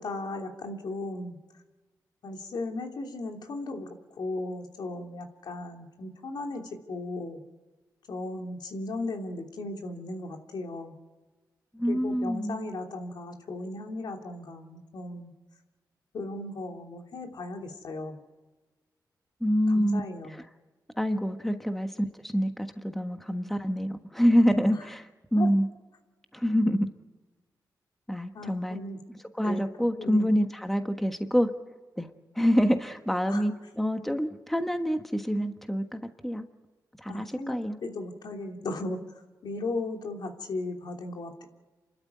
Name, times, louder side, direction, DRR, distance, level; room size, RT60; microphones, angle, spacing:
voice 1, 0.0-1.4 2.2-3.9 4.2-7.4 8.1-10.9 11.9-15.3 16.1-18.2 19.7-20.3 24.7-24.8 25.3-25.5 28.3-29.0 29.4-29.6 30.0-30.3 33.3-33.5 37.1-39.0 39.4-41.5, left 2 dB, 75° left, 2 dB, 3.0 m, -36 dB
voice 2, 11.7-12.6 19.4-20.0 20.3-20.4 21.0-21.9 22.2-25.0 25.3-25.7 26.3-26.9 28.1-28.8 29.4-31.5 32.0-32.1 32.3-36.4 37.0-37.8, equal, 5° left, 6 dB, 1.4 m, -26 dB
28.5 x 12.5 x 9.4 m, 1.3 s
cardioid pair, 95°, 7 cm